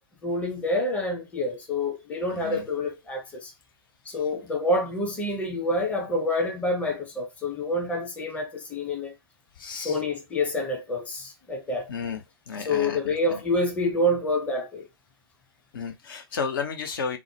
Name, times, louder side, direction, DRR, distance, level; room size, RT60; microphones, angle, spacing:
voice 1, 0.2-3.5 4.1-9.1 9.7-11.9 12.7-14.9, left 1 dB, 10° left, 0.7 m, -27 dB
voice 2, 2.3-2.7 9.6-10.0 11.9-13.4 15.7-17.2, left 5 dB, 55° left, 0.7 m, -33 dB
3.6 x 2.0 x 3.0 m
figure-of-eight pair, 120°, 14 cm